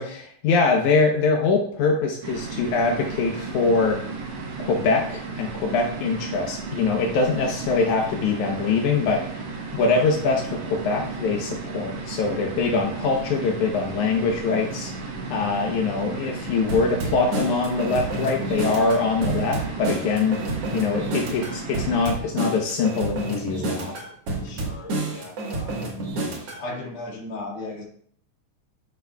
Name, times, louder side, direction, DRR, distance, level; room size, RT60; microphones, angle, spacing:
voice 1, 0.0-4.0 4.6-9.4 9.7-20.4 20.7-23.9, left 4 dB, 80° left, 1 dB, 2.4 m, -23 dB
sound 1, 2.2-22.1, right 4 dB, 70° right, 2.3 m, -34 dB
sound 2, 16.7-26.6, right 2 dB, 55° right, 2.4 m, -30 dB
voice 2, 24.4-26.0 26.6-27.8, left 2 dB, 50° left, -3 dB, 2.7 m, -36 dB
12.0 x 6.5 x 2.3 m, 0.62 s
omnidirectional pair, 3.4 m